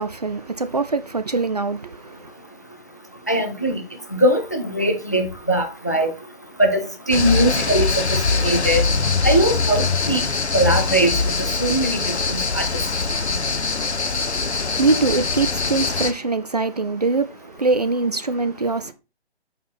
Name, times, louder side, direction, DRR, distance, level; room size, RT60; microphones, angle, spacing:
voice 1, 0.0-2.3 14.6-18.9, right 3 dB, 40° right, 0.4 m, -23 dB
voice 2, 3.3-3.8 4.1-6.1 6.6-8.8 9.2-10.2 10.5-11.3 11.6-12.7, right 1 dB, 15° left, 0.4 m, -21 dB
sound 1, 7.1-16.1, left 4 dB, 80° left, 1.0 m, -22 dB
8.6 x 4.1 x 4.2 m
figure-of-eight pair, 150°, 33 cm